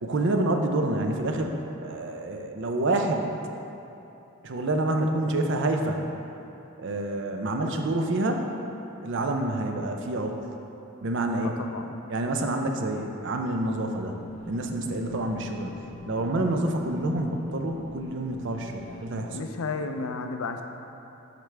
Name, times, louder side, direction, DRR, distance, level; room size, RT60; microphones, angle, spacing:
voice 1, 0.0-1.5 1.8-3.3 4.4-6.0 6.8-8.5 9.0-10.4 11.0-11.6 12.1-14.2 14.5-15.8 16.1-19.4, right 2 dB, 55° right, 3 dB, 0.5 m, -27 dB
voice 2, 11.4-12.0 19.3-20.6, left 4 dB, 75° left, 6 dB, 0.5 m, -33 dB
sound 1, 13.6-19.1, equal, 30° left, 0.7 m, -44 dB
7.9 x 5.1 x 3.4 m, 2.9 s
head